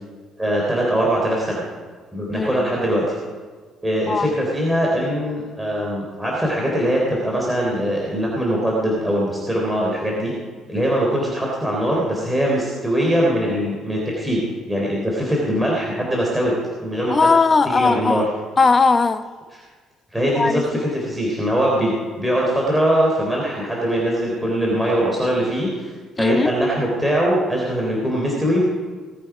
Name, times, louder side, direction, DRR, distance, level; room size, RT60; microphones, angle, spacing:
voice 1, 0.4-1.6 2.1-3.2 3.8-10.3 10.7-14.4 14.7-16.5 16.8-17.3 17.6-18.2 20.1-25.9 26.2-28.6, equal, 10° right, -3 dB, 3.7 m, -21 dB
voice 2, 2.3-2.7 4.1-4.3 17.1-18.3 18.6-19.2 20.4-20.8 26.2-26.5, left 4 dB, 30° left, 10 dB, 0.9 m, -18 dB
19.0 x 9.1 x 5.0 m, 1.5 s
supercardioid pair, 80°, 0 cm